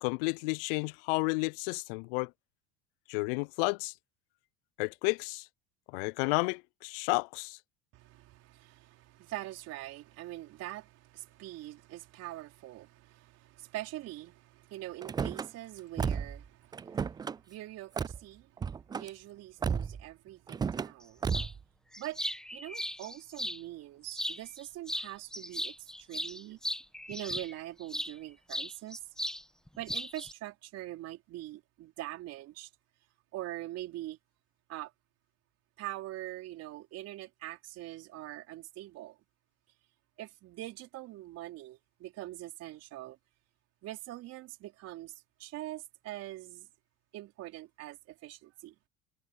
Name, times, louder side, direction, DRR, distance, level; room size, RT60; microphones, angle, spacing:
voice 1, 0.0-2.3 3.1-3.9 4.8-5.4 5.9-7.6, left 29 dB, 65° left, 0.4 m, -31 dB
voice 2, 7.9-21.3 22.0-22.2 22.5-26.6 27.1-29.0 29.8-32.7 33.3-34.2 34.7-34.9 35.8-39.2 40.2-43.2 43.8-45.1 45.4-46.7 47.1-48.8, right 15 dB, 55° right, 4.7 m, -43 dB
Car / Slam, 15.0-15.5 16.0-16.4 16.7-17.4 18.0-18.2 18.6-19.1 19.6-20.0 20.5-20.9 21.2-21.6, right 6 dB, 15° right, 0.3 m, -33 dB
sound 1, 21.3-21.5 21.9-23.6 24.1-24.6 24.9-28.1 28.5-29.4 29.7-30.3, left 1 dB, ahead, 1.4 m, -37 dB
hypercardioid pair, 90°, 30 cm